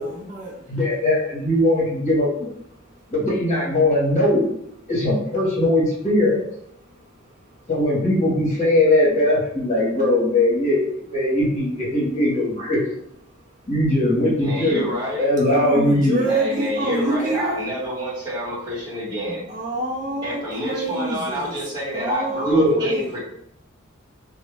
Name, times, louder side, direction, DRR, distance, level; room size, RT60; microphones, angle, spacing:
voice 1, 0.0-0.7 15.4-17.6 19.5-20.4 20.6-21.6 21.9-23.1, right 2 dB, 35° right, -3 dB, 0.4 m, -26 dB
voice 2, 0.7-2.5 3.1-4.5 4.9-6.4 7.7-12.8 13.7-14.8 15.2-16.2 22.4-22.8, left 1 dB, 35° left, -5 dB, 1.1 m, -20 dB
voice 3, 14.4-15.2 16.2-19.4 20.2-23.2, equal, 20° right, -8 dB, 1.2 m, -28 dB
2.5 x 2.1 x 3.2 m, 0.73 s
head